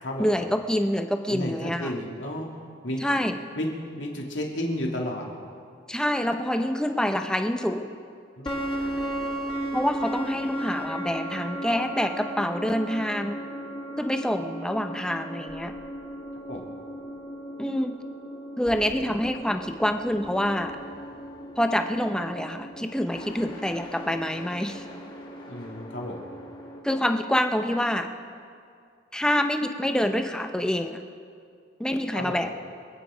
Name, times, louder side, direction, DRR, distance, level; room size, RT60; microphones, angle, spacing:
voice 1, 0.2-1.9 3.0-3.3 5.9-7.9 9.7-13.4 14.0-15.7 17.6-18.0 18.6-20.7 21.6-24.8 26.8-28.1 29.1-31.0 31.8-32.5, equal, 5° left, 6 dB, 0.7 m, -26 dB
voice 2, 1.3-2.5 2.8-3.0 3.6-3.7 4.0-5.3 8.4-8.6 16.5-16.7 25.5-26.2 32.1-32.4, left 1 dB, 70° left, -1 dB, 2.6 m, -32 dB
sound 1, 8.5-26.8, right 1 dB, 25° left, 2.3 m, -36 dB
26.0 x 9.1 x 5.0 m, 2.3 s
head